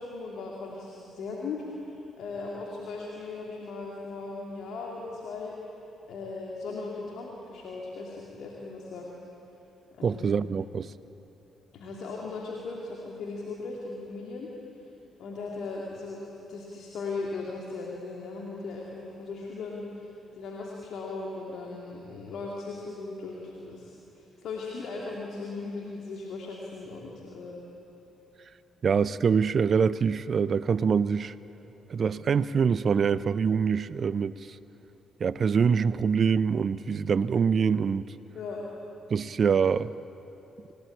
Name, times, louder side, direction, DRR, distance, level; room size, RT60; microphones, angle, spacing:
voice 1, 0.0-5.6 6.1-9.1 9.9-10.3 11.7-14.5 15.2-27.6 38.3-38.6, left 3 dB, 65° left, -2 dB, 2.7 m, -38 dB
voice 2, 10.0-10.9 28.8-31.3 31.9-34.6 35.2-38.0 39.1-39.9, right 6 dB, 50° right, 17 dB, 0.5 m, -25 dB
27.0 x 17.0 x 8.7 m, 3.0 s
hypercardioid pair, 40°, 0 cm